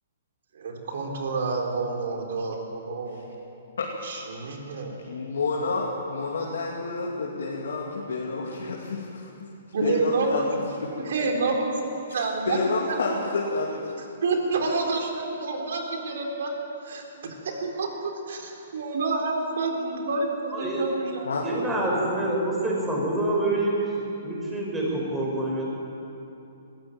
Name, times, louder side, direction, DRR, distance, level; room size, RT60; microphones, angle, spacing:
voice 1, 0.5-3.2 4.0-4.9 9.7-10.5 11.0-12.6 12.9-13.0 14.2-16.5 16.9-21.8, right 3 dB, 70° right, 2 dB, 4.0 m, -29 dB
voice 2, 5.0-9.5 9.8-10.9 12.1-13.9 21.2-21.4, left 3 dB, 85° left, -3 dB, 2.6 m, -29 dB
voice 3, 20.5-20.8 21.4-23.9 24.2-25.6, right 1 dB, 10° right, -3 dB, 5.7 m, -26 dB
21.0 x 14.0 x 9.1 m, 2.8 s
hypercardioid pair, 155°, 0 cm